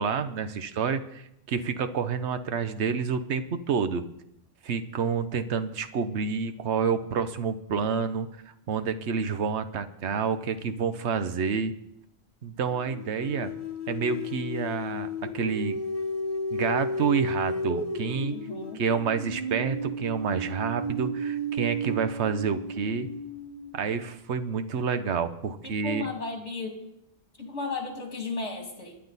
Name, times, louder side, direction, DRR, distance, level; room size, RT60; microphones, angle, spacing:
voice 1, 0.0-4.0 4.6-8.3 8.7-11.7 12.4-13.5 13.9-15.1 15.3-15.8 16.5-18.3 18.7-23.1 23.7-26.1, right 6 dB, 70° right, 10 dB, 1.2 m, -28 dB
sound 1, 10.7-10.8 12.7-23.8, equal, 30° left, 1.4 m, -33 dB
voice 2, 18.3-18.8 25.6-26.8 27.4-28.9, left 3 dB, 70° left, 1 dB, 3.1 m, -34 dB
24.0 x 9.9 x 4.1 m, 0.81 s
omnidirectional pair, 1.2 m